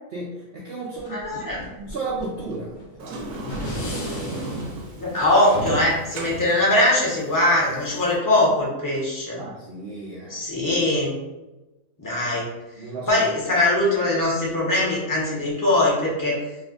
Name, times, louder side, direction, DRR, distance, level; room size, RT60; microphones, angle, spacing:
voice 1, 0.1-3.2 9.4-10.4 12.8-13.2, right 3 dB, 70° right, -4 dB, 0.5 m, -34 dB
sound 1, 1.0-4.9, left 2 dB, 65° left, 0.4 m, -38 dB
voice 2, 1.1-1.6 5.0-9.4 10.3-11.1 12.0-12.5 13.1-16.4, left 1 dB, 20° left, -5 dB, 0.7 m, -21 dB
Sliding door, 3.0-8.2, right 2 dB, 85° right, 1.1 m, -34 dB
2.6 x 2.4 x 3.7 m, 1.1 s
omnidirectional pair, 1.6 m